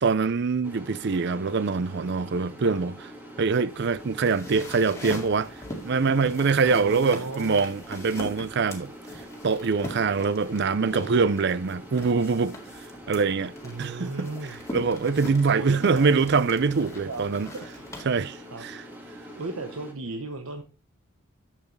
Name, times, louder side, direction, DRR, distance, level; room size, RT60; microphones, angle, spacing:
voice 1, 0.0-2.9 3.4-5.5 5.8-8.9 9.4-12.6 13.1-13.5 13.8-14.3 14.7-17.5 18.1-18.8, right 4 dB, 55° right, 0.5 m, -24 dB
sound 1, 0.6-19.9, equal, 10° right, 2.0 m, -44 dB
sound 2, 3.7-18.0, left 1 dB, 15° left, 2.0 m, -42 dB
voice 2, 6.6-7.7 10.5-11.3 13.6-14.6 15.6-16.3 17.1-17.2 17.5-17.6 18.5-18.9 19.3-20.6, right 3 dB, 85° right, 1.0 m, -35 dB
11.0 x 7.5 x 3.2 m
head